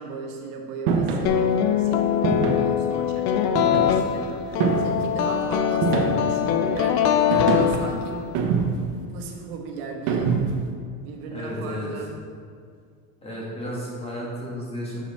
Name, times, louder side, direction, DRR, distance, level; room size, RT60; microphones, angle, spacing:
voice 1, 0.0-8.3 9.1-10.4 11.0-12.1, right 4 dB, 80° right, 1 dB, 1.2 m, -36 dB
sound 1, 0.9-1.3 2.2-2.7 3.6-4.1 4.6-5.1 5.8-6.4 7.3-7.8 8.3-9.0 10.1-10.7, right 5 dB, 60° right, 1.1 m, -24 dB
sound 2, 1.3-8.4, left 9 dB, 40° left, 0.4 m, -23 dB
voice 2, 11.3-11.9 13.2-15.0, equal, 15° left, -5 dB, 1.7 m, -33 dB
7.3 x 5.4 x 4.2 m, 2.2 s
cardioid pair, 150°, 44 cm